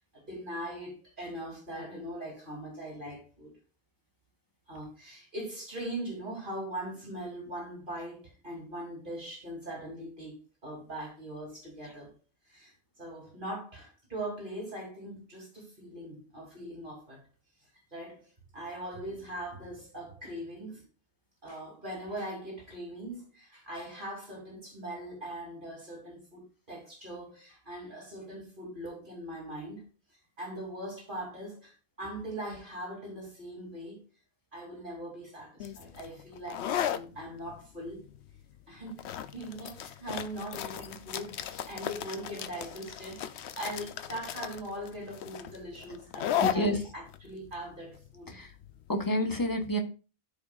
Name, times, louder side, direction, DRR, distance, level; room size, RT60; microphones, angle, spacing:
voice 1, 0.1-3.5 4.7-12.1 12.5-12.7 13.0-17.2 17.9-18.2 18.5-20.8 21.4-29.8 30.4-34.0 34.5-38.0 38.7-39.0 39.3-48.4, right 1 dB, 50° right, 3.4 m, -41 dB
sound 1, 35.6-49.0, left 10 dB, 85° left, 0.9 m, -36 dB
voice 2, 46.4-46.8 48.4-48.5 48.9-49.8, equal, 20° left, 1.2 m, -28 dB
13.0 x 5.4 x 2.5 m
omnidirectional pair, 1.1 m